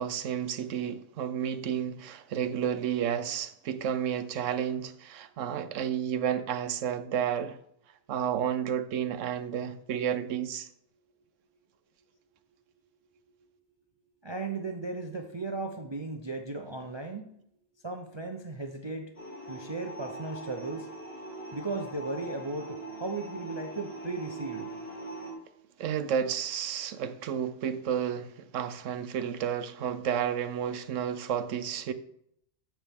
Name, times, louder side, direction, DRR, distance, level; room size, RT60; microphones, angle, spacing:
voice 1, 0.0-7.6 8.1-10.7 25.8-31.9, right 9 dB, 85° right, 1.0 m, -31 dB
voice 2, 14.2-17.3 17.8-19.1 19.5-20.9 21.5-24.7, right 3 dB, 30° right, 0.6 m, -36 dB
sound 1, 19.2-25.3, right 2 dB, 55° left, 2.4 m, -41 dB
13.5 x 5.7 x 3.6 m
omnidirectional pair, 1.3 m